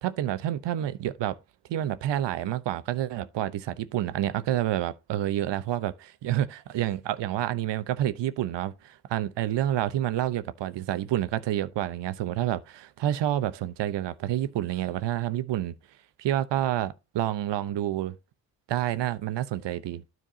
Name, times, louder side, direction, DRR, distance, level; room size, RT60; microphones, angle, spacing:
voice 1, 0.0-1.4 1.7-15.8 16.2-18.2 18.7-20.0, right 12 dB, 60° right, 0.9 m, -28 dB
12.5 x 4.6 x 2.8 m
hypercardioid pair, 50°, 49 cm